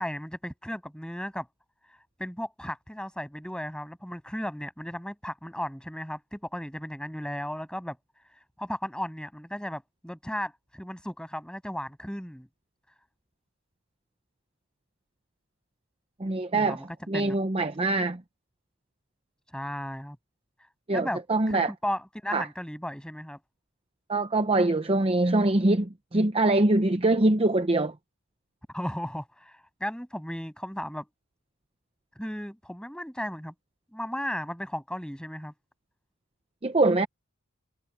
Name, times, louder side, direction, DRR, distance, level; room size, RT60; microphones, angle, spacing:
voice 1, 0.0-1.5 2.2-8.0 8.6-12.5 16.5-16.9 17.1-17.4 19.5-20.2 20.9-21.2 21.5-23.4 28.7-31.1 32.2-33.5 33.9-35.5, equal, 5° left, 7.7 m, -35 dB
voice 2, 16.2-16.8 17.1-18.2 20.9-21.7 22.3-22.5 24.1-27.9 36.6-37.1, right 2 dB, 25° right, 0.7 m, -23 dB
head